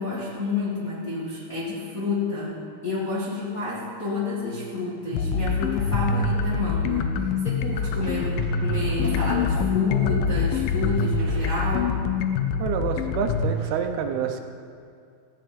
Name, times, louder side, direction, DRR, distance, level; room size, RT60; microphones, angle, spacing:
voice 1, 0.0-2.5 2.8-8.3 8.6-11.9, left 3 dB, 35° left, -7 dB, 1.5 m, -29 dB
sound 1, 5.1-13.5, left 5 dB, 75° left, 2.2 m, -25 dB
sound 2, 7.7-13.7, right 3 dB, 50° right, 3.2 m, -43 dB
voice 2, 12.6-14.4, right 7 dB, 80° right, 5 dB, 2.8 m, -27 dB
14.5 x 7.9 x 8.6 m, 2.4 s
omnidirectional pair, 4.5 m